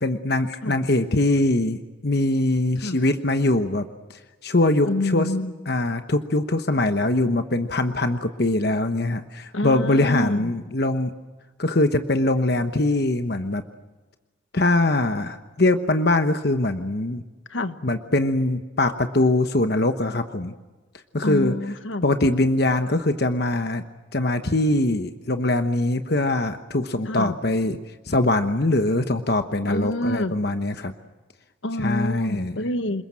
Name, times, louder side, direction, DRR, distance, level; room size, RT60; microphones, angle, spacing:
voice 1, 0.0-5.3 5.7-11.1 11.6-13.6 14.5-17.2 17.8-20.5 21.1-21.6 22.0-23.8 24.1-27.8 28.1-30.9 31.8-32.6, left 2 dB, 50° left, 8 dB, 1.1 m, -22 dB
voice 2, 4.9-5.5 9.5-10.5 17.5-17.8 21.2-22.1 27.1-27.4 29.7-30.3 31.6-33.0, left 1 dB, 70° left, 10 dB, 1.3 m, -27 dB
28.5 x 20.5 x 7.6 m, 1.2 s
head